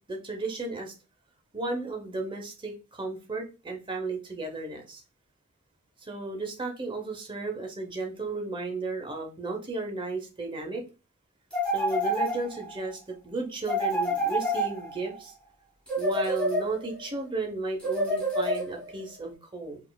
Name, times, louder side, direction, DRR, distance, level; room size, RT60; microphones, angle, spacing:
voice 1, 0.1-0.9 1.5-5.0 6.0-10.8 11.7-15.3 16.0-19.8, right 3 dB, 20° right, 3 dB, 0.6 m, -34 dB
sound 1, 11.5-12.8 13.6-15.2 15.9-17.0 17.8-19.0, equal, 5° left, 1.1 m, -28 dB
4.1 x 2.4 x 2.2 m, 0.31 s
head